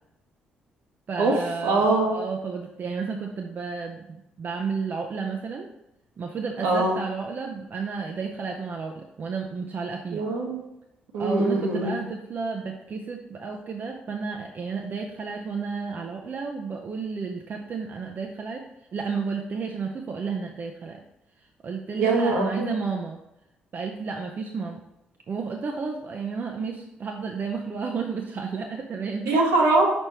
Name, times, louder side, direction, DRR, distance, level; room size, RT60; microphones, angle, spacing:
voice 1, 1.1-5.7 6.2-10.2 11.2-18.6 18.9-21.0 21.6-23.2 23.7-24.8 25.3-29.4, right 5 dB, 40° right, 2 dB, 0.6 m, -32 dB
voice 2, 1.6-2.2 6.6-7.0 10.1-10.6 11.1-11.9 22.0-22.7 29.3-29.9, right 3 dB, 65° right, 0 dB, 1.2 m, -22 dB
6.1 x 5.3 x 3.0 m, 0.89 s
figure-of-eight pair, 40°, 5 cm